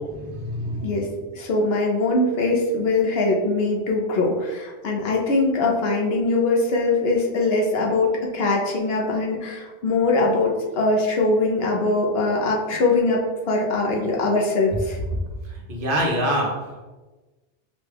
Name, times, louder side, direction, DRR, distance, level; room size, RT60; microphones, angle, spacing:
voice 1, 0.0-1.0 15.1-15.2 15.4-16.8, equal, 60° right, -1 dB, 1.0 m, -26 dB
voice 2, 0.8-13.2 13.5-15.0, left 2 dB, 70° left, -1 dB, 0.9 m, -22 dB
5.0 x 2.3 x 3.4 m, 1.2 s
omnidirectional pair, 1.1 m